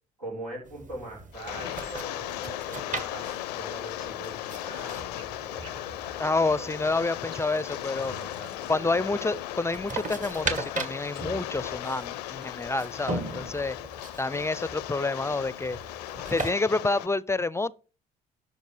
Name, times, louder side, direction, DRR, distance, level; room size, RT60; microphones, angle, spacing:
voice 1, 0.2-6.9 7.5-9.3, right 1 dB, 90° right, 4.5 m, -43 dB
sound 1, 0.6-16.5, right 3 dB, 40° right, 2.2 m, -39 dB
Rain, 1.3-17.1, left 15 dB, 90° left, 0.5 m, -37 dB
sound 2, 1.6-12.6, right 3 dB, 20° right, 2.2 m, -57 dB
voice 2, 6.2-8.1 8.7-13.8 14.2-15.8 16.3-17.7, left 3 dB, 15° left, 0.5 m, -28 dB
12.5 x 5.3 x 4.9 m
hypercardioid pair, 55°, 20 cm